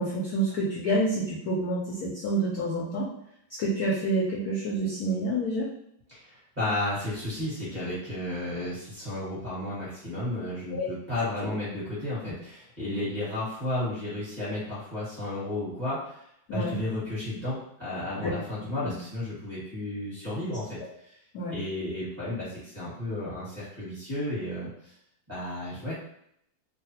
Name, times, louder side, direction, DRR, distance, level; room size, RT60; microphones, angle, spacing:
voice 1, 0.0-3.1 3.6-5.7 10.7-10.9 16.5-16.8 18.2-18.3 18.8-18.9 21.3-21.5, right 1 dB, 70° left, -5 dB, 0.9 m, -28 dB
voice 2, 6.1-21.2 21.5-24.7 25.3-25.9, left 1 dB, 25° right, -10 dB, 1.1 m, -33 dB
3.1 x 2.1 x 2.8 m, 0.72 s
omnidirectional pair, 2.1 m